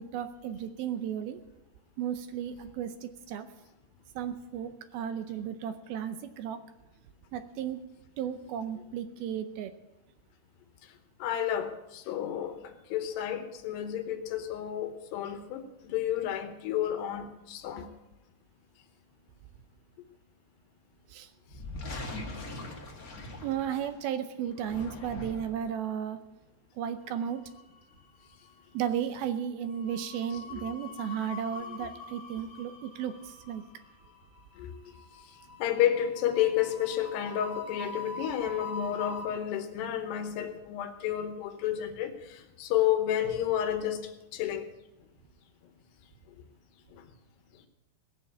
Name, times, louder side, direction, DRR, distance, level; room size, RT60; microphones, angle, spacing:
voice 1, 0.0-1.4 2.0-3.5 4.2-6.6 7.3-7.8 8.2-9.7 21.1-21.3 23.4-26.2 26.8-27.4 28.7-33.6, right 9 dB, 80° right, 10 dB, 2.2 m, -34 dB
voice 2, 11.2-17.9 30.3-30.6 34.6-34.7 35.6-44.7 46.9-47.0, left 10 dB, 75° left, 8 dB, 3.1 m, -31 dB
sound 1, 21.5-24.0 24.5-25.7, left 2 dB, 55° left, 1.0 m, -41 dB
sound 2, 27.2-28.0 28.2-28.5 29.7-39.2, left 3 dB, 25° left, 2.1 m, -44 dB
18.5 x 7.0 x 8.6 m, 0.97 s
omnidirectional pair, 5.0 m